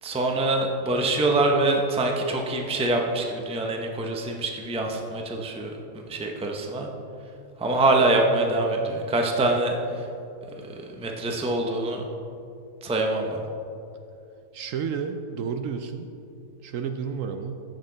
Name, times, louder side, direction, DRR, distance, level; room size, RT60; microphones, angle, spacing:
voice 1, 0.0-5.8 6.1-6.9 7.6-10.1 10.7-12.0 12.8-13.4, right 2 dB, 5° right, 1 dB, 0.5 m, -25 dB
voice 2, 14.5-16.1 16.6-17.6, right 6 dB, 70° right, 7 dB, 0.9 m, -31 dB
14.5 x 6.6 x 3.9 m, 2.7 s
omnidirectional pair, 1.6 m